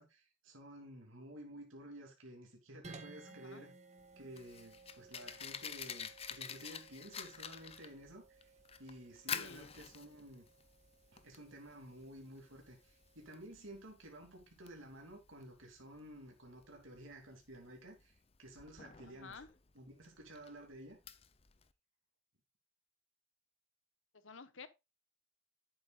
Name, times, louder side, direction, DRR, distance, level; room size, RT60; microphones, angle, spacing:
voice 1, 0.0-3.7 4.1-8.5 8.8-10.5 11.1-19.4 19.7-21.0, right 1 dB, 85° right, 2.9 m, -53 dB
sound 1, 2.8-13.3, right 3 dB, 35° right, 1.4 m, -59 dB
voice 2, 3.3-3.7 9.3-9.7 19.1-19.5 24.2-24.7, left 4 dB, 75° left, 1.1 m, -52 dB
Fire, 4.0-21.7, left 7 dB, 30° left, 0.6 m, -49 dB
11.0 x 8.6 x 2.4 m
head